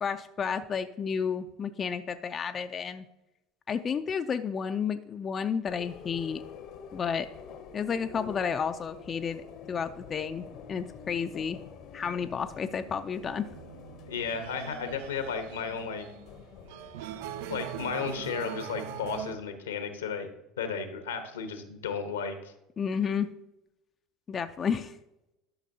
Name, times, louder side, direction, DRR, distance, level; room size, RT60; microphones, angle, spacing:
voice 1, 0.0-3.1 3.7-6.4 6.9-7.3 7.7-9.4 9.7-11.6 11.9-13.5 22.8-23.3 24.3-25.0, left 6 dB, 35° left, 8 dB, 0.4 m, -31 dB
sound 1, 5.6-19.2, left 6 dB, 55° left, 0.8 m, -48 dB
sound 2, 13.2-19.4, right 12 dB, 70° right, 0.3 m, -42 dB
voice 2, 14.1-16.0 17.5-20.3 20.6-22.5, left 5 dB, 85° left, 8 dB, 1.0 m, -34 dB
11.5 x 5.7 x 2.7 m, 0.90 s
hypercardioid pair, 75°, 0 cm